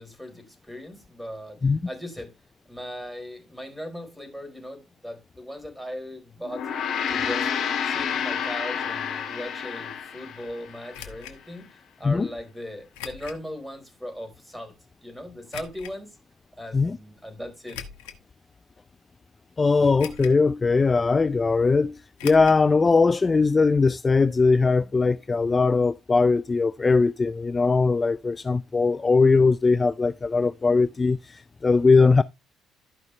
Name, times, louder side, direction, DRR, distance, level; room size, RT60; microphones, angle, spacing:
voice 1, 0.0-2.3 2.7-6.7 7.1-7.5 7.9-14.7 15.0-16.1 16.6-17.8, equal, 5° right, 4.1 m, -38 dB
Gong, 6.4-11.1, left 7 dB, 60° left, 2.1 m, -29 dB
sound 1, 10.9-11.4 12.9-13.4 14.0-14.1 15.5-15.9 17.6-18.2 18.9-19.0 20.0-20.5 20.7-20.8 22.2-22.6 22.9-23.0 23.3-23.4, left 9 dB, 85° left, 1.1 m, -40 dB
voice 2, 19.6-32.2, left 4 dB, 30° left, 0.4 m, -20 dB
13.5 x 5.3 x 3.3 m
hypercardioid pair, 55°, 0 cm